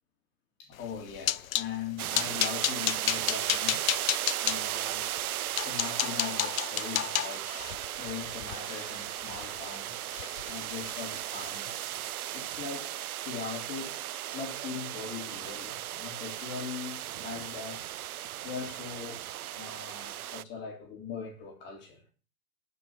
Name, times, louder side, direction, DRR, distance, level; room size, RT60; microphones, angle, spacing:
voice 1, 0.6-3.9 4.4-5.1 5.6-7.5 8.0-9.9 10.4-11.7 12.3-14.0 14.3-17.8 18.4-19.2 19.5-22.0, left 6 dB, 25° left, 3.3 m, -40 dB
sound 1, 0.8-1.7 2.1-4.6 5.2-5.3 5.6-9.8 10.1-10.5 10.8-11.0 11.4-11.6, left 12 dB, 70° left, 0.7 m, -31 dB
sound 2, 2.0-20.4, right 12 dB, 90° right, 0.6 m, -36 dB
12.5 x 6.1 x 7.5 m
hypercardioid pair, 145°, 43 cm